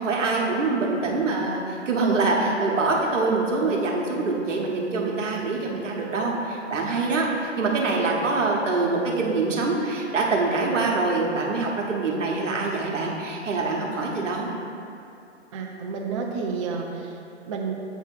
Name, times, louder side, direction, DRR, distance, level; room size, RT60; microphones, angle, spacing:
voice 1, 0.0-14.5, right 3 dB, 75° right, -1 dB, 1.3 m, -24 dB
voice 2, 15.5-17.2 17.5-17.7, right 5 dB, 30° right, 0 dB, 0.4 m, -30 dB
7.8 x 3.4 x 4.6 m, 2.7 s
hypercardioid pair, 125°, 37 cm